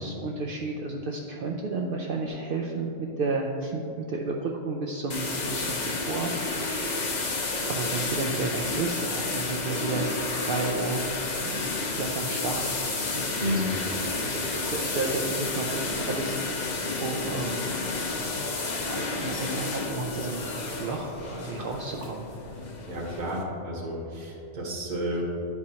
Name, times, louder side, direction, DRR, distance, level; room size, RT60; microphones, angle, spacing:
voice 1, 0.0-7.2 7.7-10.1 10.5-11.0 11.4-11.6 11.9-12.8 13.1-13.9 14.2-17.6 18.0-18.1 18.9-20.5 20.8-22.3, right 3 dB, 60° right, 0 dB, 0.6 m, -32 dB
sound 1, 5.1-23.4, left 3 dB, 45° left, 0.8 m, -31 dB
voice 2, 13.4-13.7 22.9-25.2, equal, 45° right, -3 dB, 1.2 m, -31 dB
10.5 x 4.7 x 2.8 m, 2.6 s
omnidirectional pair, 1.1 m